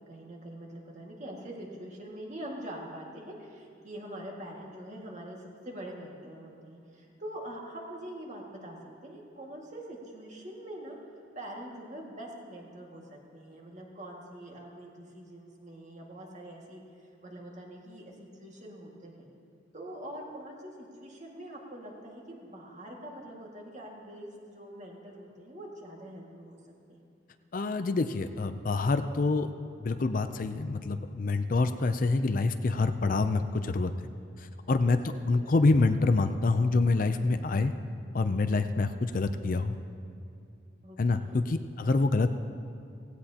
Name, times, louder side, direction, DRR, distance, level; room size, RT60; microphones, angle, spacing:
voice 1, 0.1-8.8 9.0-11.0 11.4-19.3 19.7-26.6 26.9-27.0 35.1-35.6 40.8-41.4, right 1 dB, 40° right, -2 dB, 1.9 m, -44 dB
voice 2, 27.5-29.5 29.8-33.9 34.4-37.7 38.1-39.8 41.0-42.3, left 3 dB, 45° left, 9 dB, 0.4 m, -26 dB
17.0 x 16.5 x 2.9 m, 2.6 s
head